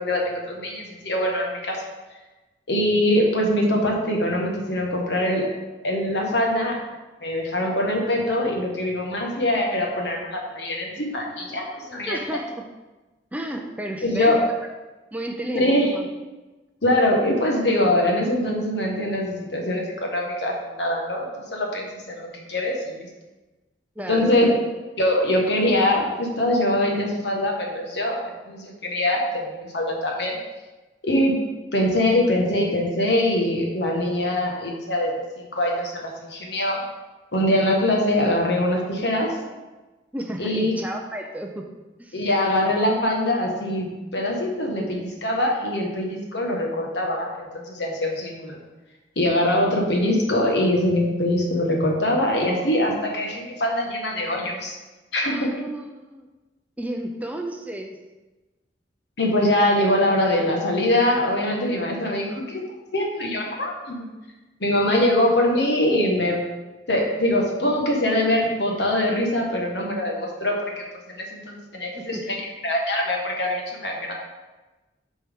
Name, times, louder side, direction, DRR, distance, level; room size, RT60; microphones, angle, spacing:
voice 1, 0.0-1.8 2.7-5.5 5.8-6.8 7.2-12.2 14.0-14.4 15.5-15.9 16.8-23.1 24.1-24.5 25.0-30.4 31.0-31.4 31.7-36.8 37.3-39.4 40.4-40.7 42.1-48.6 49.1-54.8 55.1-55.4 59.2-62.6 62.9-64.1 64.6-66.5 66.9-74.1, left 1 dB, 65° left, 0 dB, 1.4 m, -23 dB
voice 2, 12.1-12.6 13.3-14.3 15.1-16.1 24.0-24.6 40.1-41.7 42.0-42.2 55.2-56.3 56.8-58.0 72.0-72.3, right 1 dB, 10° right, 2 dB, 0.5 m, -32 dB
8.8 x 4.4 x 3.6 m, 1.1 s
head